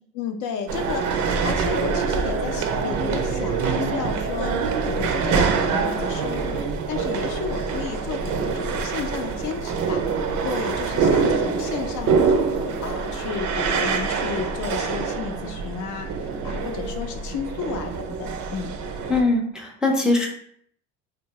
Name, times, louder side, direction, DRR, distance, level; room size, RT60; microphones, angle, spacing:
voice 1, 0.1-10.0 10.4-18.8, left 7 dB, 60° left, 5 dB, 0.5 m, -33 dB
sound 1, 0.7-19.2, right 5 dB, 60° right, 0.5 m, -25 dB
voice 2, 19.1-20.3, left 2 dB, ahead, 0 dB, 0.4 m, -21 dB
2.7 x 2.2 x 2.8 m, 0.66 s
supercardioid pair, 90°, 34 cm